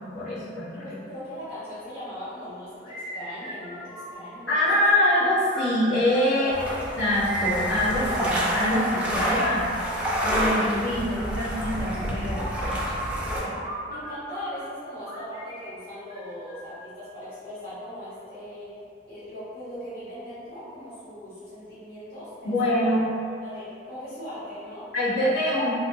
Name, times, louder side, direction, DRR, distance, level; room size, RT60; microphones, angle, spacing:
voice 1, 0.0-0.8 4.5-6.7 7.0-9.7 10.2-12.8 13.4-13.5 22.4-23.0 24.9-25.7, left 1 dB, 85° left, -14 dB, 1.3 m, -24 dB
voice 2, 0.7-4.8 6.3-6.7 13.8-18.7 19.0-23.0 23.2-24.9, equal, 55° left, -14 dB, 1.1 m, -39 dB
sound 1, 2.8-4.4 5.0-6.6 7.3-8.9 9.5-10.7 11.9-14.6 15.1-16.8, right 1 dB, 35° left, 0.7 m, -37 dB
sound 2, 6.5-13.4, equal, 5° right, 0.4 m, -28 dB
2.9 x 2.1 x 2.6 m, 2.4 s
head